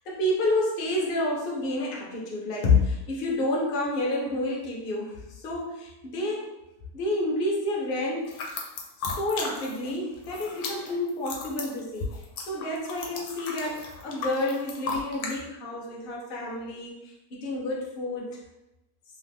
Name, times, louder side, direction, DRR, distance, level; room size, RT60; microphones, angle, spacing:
voice 1, 0.0-6.5 6.9-8.4 9.0-18.4, left 2 dB, 50° left, -3 dB, 0.7 m, -29 dB
sound 1, 8.3-9.9 10.2-15.3, left 4 dB, 80° left, 1.1 m, -35 dB
2.8 x 2.3 x 3.4 m, 0.95 s
omnidirectional pair, 1.6 m